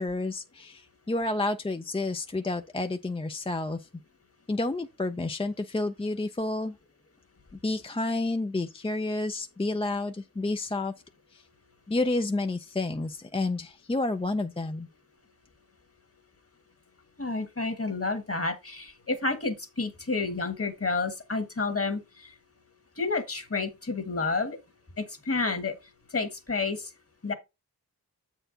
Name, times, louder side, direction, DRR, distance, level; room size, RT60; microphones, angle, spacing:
voice 1, 0.0-3.9 4.5-6.8 7.6-10.9 11.3-11.4 11.9-14.9, left 2 dB, 15° left, 0.4 m, -30 dB
voice 2, 17.2-22.3 23.0-24.6 25.0-25.7 26.1-26.9 27.2-27.3, left 3 dB, 35° left, 1.5 m, -30 dB
7.8 x 4.5 x 3.8 m
wide cardioid pair, 55°, 38 cm